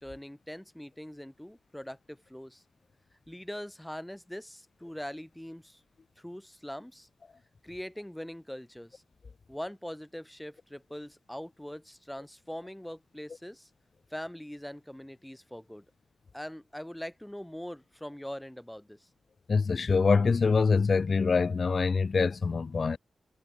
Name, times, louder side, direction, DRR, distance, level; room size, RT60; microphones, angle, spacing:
voice 1, 0.0-2.6 3.3-5.8 6.2-7.1 7.6-9.0 9.5-13.7 14.1-15.8 16.3-19.1, equal, 5° left, 2.7 m, -42 dB
voice 2, 19.5-23.0, left 4 dB, 55° left, 1.6 m, -25 dB
cardioid pair, 65°, 0 cm